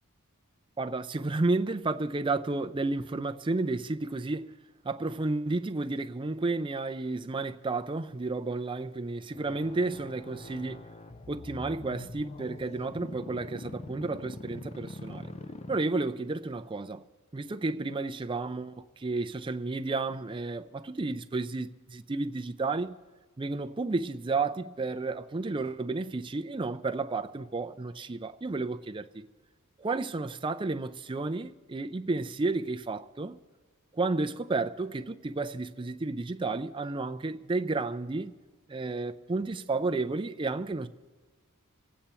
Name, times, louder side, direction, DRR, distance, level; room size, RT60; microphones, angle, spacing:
voice 1, 0.8-4.5 4.8-10.9 11.3-15.3 15.7-17.0 17.3-23.0 23.4-29.3 29.8-33.4 33.9-38.3 38.7-40.9, right 3 dB, 20° right, 0.5 m, -32 dB
sound 1, 9.3-16.3, left 2 dB, 30° left, 0.5 m, -44 dB
25.5 x 8.7 x 4.4 m
head